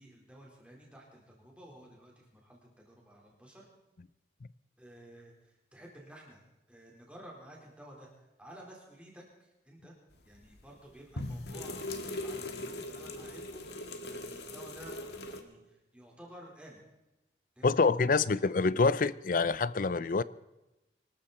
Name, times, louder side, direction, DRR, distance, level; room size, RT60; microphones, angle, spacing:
voice 1, 0.0-3.7 4.8-6.4 6.7-8.1 8.4-9.9 10.2-13.7 14.0-16.8 17.6-18.3, right 1 dB, 5° right, 4.3 m, -53 dB
sound 1, 10.3-10.6 11.2-15.4, left 2 dB, 65° left, 1.6 m, -40 dB
voice 2, 17.6-20.2, left 4 dB, 50° left, 0.5 m, -26 dB
24.0 x 13.5 x 4.3 m
head